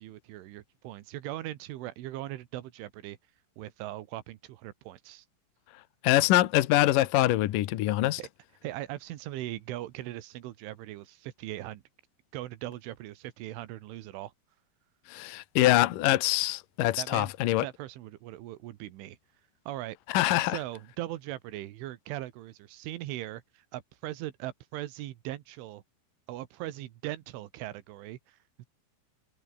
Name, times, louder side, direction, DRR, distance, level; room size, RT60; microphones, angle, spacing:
voice 1, 0.0-3.2 3.6-5.3 8.2-8.3 8.6-11.8 12.3-14.3 17.0-17.3 17.6-19.2 19.7-20.0 20.4-25.8 26.3-28.7, right 15 dB, 90° right, 3.9 m, -39 dB
voice 2, 6.0-8.2 15.1-17.7 20.1-20.6, left 16 dB, 80° left, 1.9 m, -24 dB
omnidirectional pair, 5.5 m